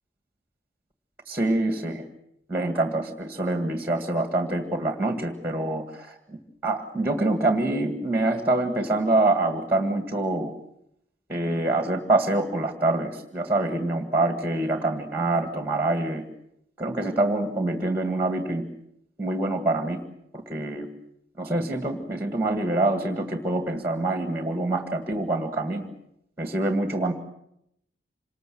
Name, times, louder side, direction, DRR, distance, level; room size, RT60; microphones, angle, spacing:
voice 1, 1.3-2.0 2.5-6.4 6.6-10.5 11.3-16.2 16.8-18.6 19.2-20.0 20.3-20.9 21.4-25.9 26.4-27.1, right 2 dB, 10° right, 5 dB, 1.9 m, -25 dB
26.5 x 20.5 x 7.8 m, 0.77 s
head